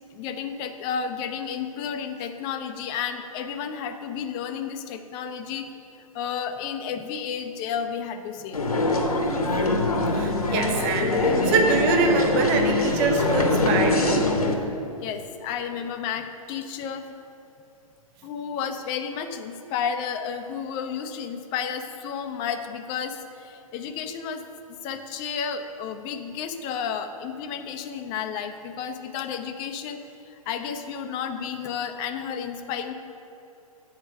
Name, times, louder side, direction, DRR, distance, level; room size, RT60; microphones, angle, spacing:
voice 1, 0.1-5.7 6.1-8.6 15.0-17.2 18.2-24.4 24.8-30.0 30.3-32.9, left 7 dB, 25° left, 7 dB, 0.4 m, -32 dB
sound 1, 8.5-14.6, left 2 dB, 80° left, 0.9 m, -23 dB
voice 2, 10.1-14.2, right 4 dB, 30° right, 4 dB, 0.6 m, -24 dB
7.9 x 4.4 x 5.9 m, 2.8 s
figure-of-eight pair, 115°, 19 cm